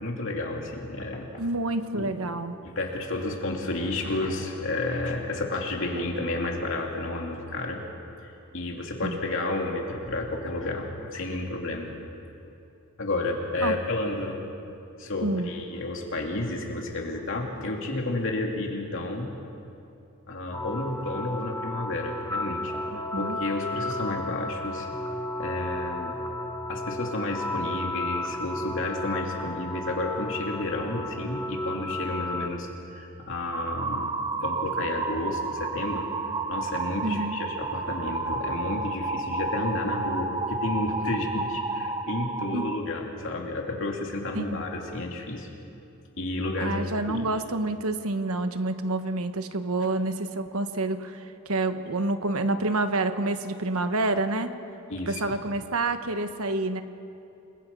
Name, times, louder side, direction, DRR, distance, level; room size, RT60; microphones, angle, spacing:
voice 1, 0.0-1.3 1.9-2.1 2.6-7.8 8.2-11.9 12.4-12.5 13.0-14.4 15.0-19.3 20.3-22.7 23.2-24.9 25.4-26.1 26.7-36.1 36.5-45.5 46.2-47.3 54.9-55.2, left 2 dB, 60° left, 0 dB, 3.0 m, -31 dB
voice 2, 1.4-2.6 9.0-9.2 13.6-13.7 15.2-15.5 22.9-23.4 37.0-37.4 42.5-42.7 44.3-44.6 46.6-54.5 55.1-56.8, right 2 dB, 75° right, 9 dB, 1.2 m, -28 dB
sound 1, 20.5-32.5, left 1 dB, 10° left, 1.1 m, -33 dB
sound 2, 33.5-42.8, right 3 dB, 20° right, 0.8 m, -31 dB
29.5 x 21.0 x 5.6 m, 2.8 s
head